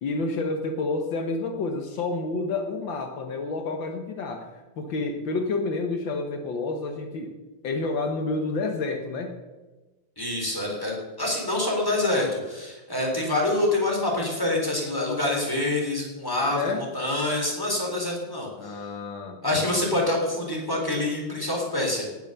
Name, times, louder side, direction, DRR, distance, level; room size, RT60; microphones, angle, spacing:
voice 1, 0.0-4.5 4.8-7.3 7.6-9.3 16.4-16.8 18.6-19.4, left 3 dB, 90° left, 5 dB, 1.0 m, -29 dB
voice 2, 10.2-18.8 19.4-22.1, left 2 dB, 5° left, -1 dB, 3.6 m, -26 dB
18.0 x 8.2 x 6.8 m, 1.1 s
omnidirectional pair, 4.1 m